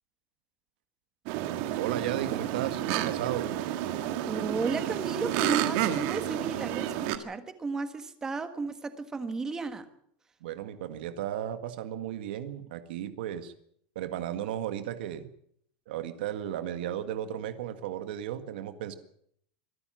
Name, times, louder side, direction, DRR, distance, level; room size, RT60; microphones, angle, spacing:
sound 1, 1.3-7.2, right 12 dB, 45° right, 1.7 m, -30 dB
voice 1, 1.8-3.5 10.4-13.5 14.0-15.3 15.9-19.0, right 11 dB, 75° right, 10 dB, 1.9 m, -34 dB
voice 2, 4.3-9.8, right 4 dB, 10° right, 10 dB, 1.5 m, -34 dB
24.5 x 13.0 x 9.2 m, 0.68 s
supercardioid pair, 175°, 5 cm